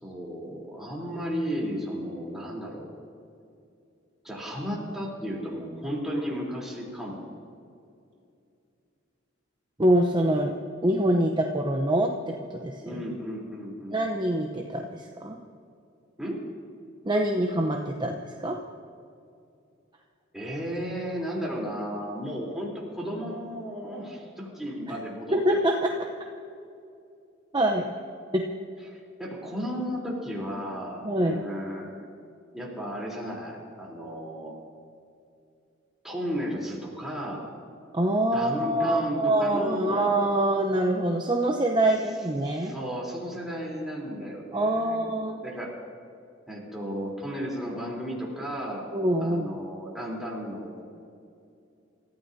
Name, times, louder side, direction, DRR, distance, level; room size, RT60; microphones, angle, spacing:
voice 1, 0.0-2.9 4.2-7.3 12.8-14.0 16.2-16.4 20.3-25.6 28.9-32.1 32.5-34.6 36.0-37.5 38.3-40.1 42.4-45.7 46.5-48.9 49.2-50.8, equal, ahead, -4 dB, 3.7 m, -34 dB
voice 2, 9.8-10.5 10.8-12.1 12.6-13.0 13.9-15.4 17.0-18.1 18.4-18.5 25.3-25.9 27.5-27.8 28.3-28.4 31.0-31.4 37.9-42.7 44.5-45.4 48.9-49.5, right 1 dB, 25° right, 2 dB, 0.9 m, -24 dB
28.0 x 14.5 x 2.8 m, 2.5 s
head